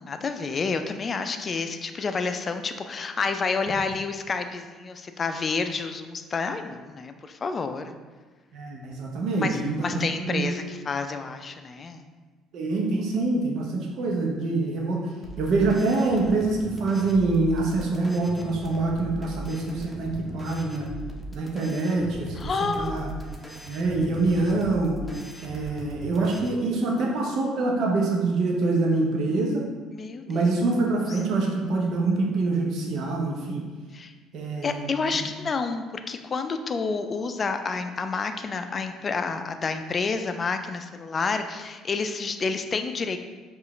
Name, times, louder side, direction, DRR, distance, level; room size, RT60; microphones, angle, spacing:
voice 1, 0.0-7.9 9.4-12.1 22.4-23.0 29.9-30.4 33.9-34.1 34.6-43.2, left 4 dB, 40° left, 7 dB, 0.4 m, -29 dB
voice 2, 8.5-10.4 12.5-15.0 15.4-20.9 21.3-22.5 22.8-23.1 23.6-25.0 25.4-29.7 30.3-33.6 34.3-35.2, right 3 dB, 65° right, -1 dB, 0.8 m, -25 dB
sound 1, 15.2-26.5, right 1 dB, 10° left, 0.8 m, -39 dB
4.7 x 2.5 x 3.1 m, 1.4 s
hypercardioid pair, 60°, 0 cm